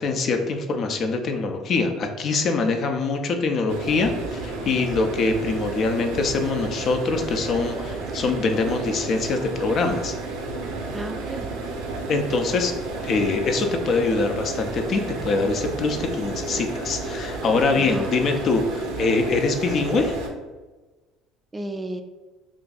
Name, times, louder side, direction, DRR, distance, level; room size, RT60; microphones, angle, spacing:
voice 1, 0.0-10.1 12.1-12.7 13.0-20.2, left 3 dB, 50° left, 5 dB, 0.4 m, -24 dB
sound 1, 3.7-20.3, right 3 dB, 80° right, 0.5 m, -32 dB
voice 2, 10.9-11.5 17.3-17.4 17.8-18.3 21.5-22.0, right 1 dB, 20° right, 6 dB, 0.3 m, -33 dB
2.5 x 2.4 x 3.9 m, 1.2 s
hypercardioid pair, 75°, 0 cm